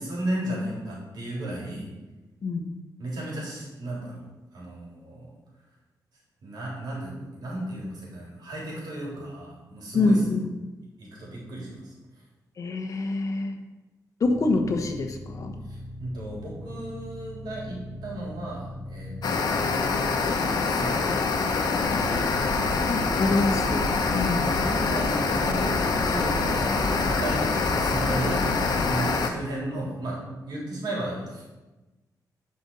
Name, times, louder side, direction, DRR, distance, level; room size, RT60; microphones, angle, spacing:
voice 1, 0.0-1.9 3.0-4.2 4.5-5.3 6.4-10.2 11.0-11.9 16.0-21.1 21.5-21.7 22.0-23.1 24.3-28.5 28.8-31.4, right 1 dB, 90° right, -4 dB, 3.6 m, -34 dB
voice 2, 9.9-10.5 12.6-13.6 14.2-15.5 22.9-23.8 24.1-24.6, left 2 dB, 50° left, 5 dB, 1.1 m, -25 dB
sound 1, 14.2-20.6, left 1 dB, 30° left, 2.1 m, -40 dB
sound 2, 19.2-29.3, left 4 dB, 70° left, 1.0 m, -25 dB
sound 3, 21.7-28.9, right 1 dB, 60° right, 3.3 m, -34 dB
10.0 x 5.4 x 5.5 m, 1.1 s
wide cardioid pair, 130°, 7 cm